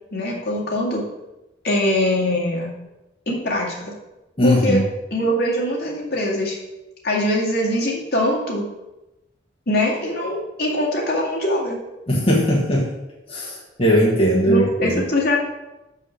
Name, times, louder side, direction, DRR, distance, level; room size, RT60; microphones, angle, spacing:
voice 1, 0.1-1.0 1.6-2.7 3.3-3.9 4.4-4.8 5.1-6.6 7.0-8.7 9.7-11.8 14.5-15.4, left 1 dB, 60° left, -3 dB, 2.2 m, -22 dB
voice 2, 4.4-4.8 12.1-12.9 13.3-14.9, equal, 30° left, -4 dB, 1.4 m, -19 dB
6.5 x 5.5 x 6.3 m, 0.99 s
head